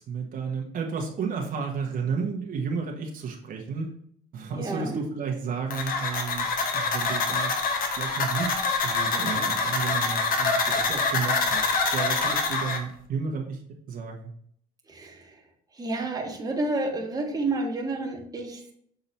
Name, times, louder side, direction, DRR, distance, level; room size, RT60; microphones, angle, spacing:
voice 1, 0.0-3.9 4.3-6.5 6.7-7.6 8.0-13.6 13.9-14.3, right 5 dB, 55° right, 1 dB, 1.3 m, -32 dB
voice 2, 4.5-5.0 14.9-15.4 15.7-18.7, right 2 dB, 20° right, 0 dB, 1.6 m, -30 dB
sound 1, 5.7-12.8, left 4 dB, 60° left, 1.3 m, -26 dB
6.9 x 3.9 x 4.3 m, 0.64 s
cardioid pair, 110°, 17 cm